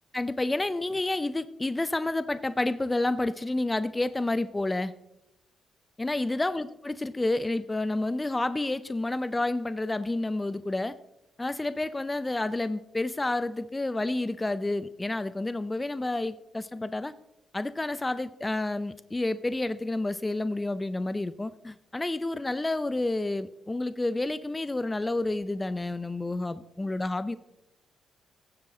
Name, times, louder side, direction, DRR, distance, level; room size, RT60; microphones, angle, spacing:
voice 1, 0.1-4.9 6.0-11.0 11.4-17.1 17.5-27.4, left 2 dB, 20° left, 15 dB, 0.5 m, -29 dB
15.5 x 7.4 x 3.8 m, 0.91 s
supercardioid pair, 55°, 0 cm